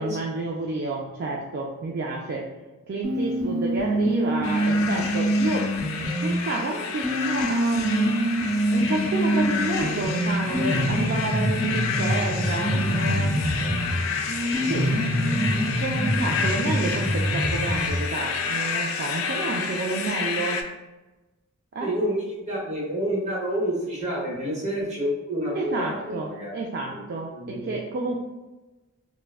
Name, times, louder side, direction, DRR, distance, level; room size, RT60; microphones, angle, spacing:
voice 1, 0.0-2.5 2.9-5.7 6.2-8.3 8.7-13.4 14.3-20.6 21.7-21.9 25.5-28.2, right 3 dB, 50° right, -1 dB, 0.3 m, -30 dB
sound 1, 3.0-6.3 7.0-14.0 14.5-18.0, right 1 dB, ahead, 1.2 m, -25 dB
sound 2, 4.4-20.6, left 5 dB, 70° left, 0.3 m, -30 dB
sound 3, 10.4-16.4, left 1 dB, 40° left, 0.7 m, -32 dB
voice 2, 21.8-26.5 26.9-27.0 27.3-27.7, equal, 35° right, -5 dB, 0.9 m, -29 dB
3.4 x 2.1 x 2.3 m, 1.1 s
head